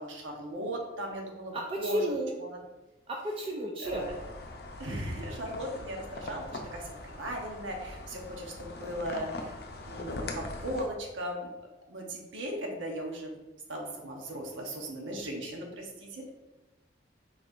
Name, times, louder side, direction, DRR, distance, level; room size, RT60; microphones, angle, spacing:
voice 1, 0.0-2.0 2.4-2.6 3.8-4.1 4.8-9.6 9.9-11.5 11.9-13.3 13.7-16.3, right 1 dB, 90° right, 1 dB, 1.0 m, -37 dB
voice 2, 1.5-2.4 3.1-4.1, equal, 30° right, 0 dB, 0.4 m, -32 dB
sound 1, 3.8-10.9, left 2 dB, 55° left, 0.5 m, -42 dB
4.5 x 4.1 x 2.5 m, 1.0 s
head